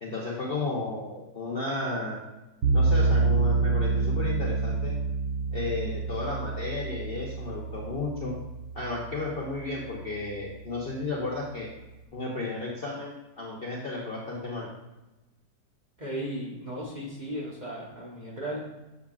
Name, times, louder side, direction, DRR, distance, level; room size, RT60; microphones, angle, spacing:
voice 1, 0.0-2.2 2.7-4.9 5.5-8.3 8.7-11.7 12.1-14.7, left 3 dB, 45° left, -3 dB, 0.8 m, -33 dB
sound 1, 2.6-9.7, right 3 dB, 60° right, 1.0 m, -27 dB
voice 2, 16.0-18.6, right 1 dB, 30° right, -4 dB, 1.1 m, -35 dB
7.2 x 6.7 x 2.4 m, 1.1 s
omnidirectional pair, 1.9 m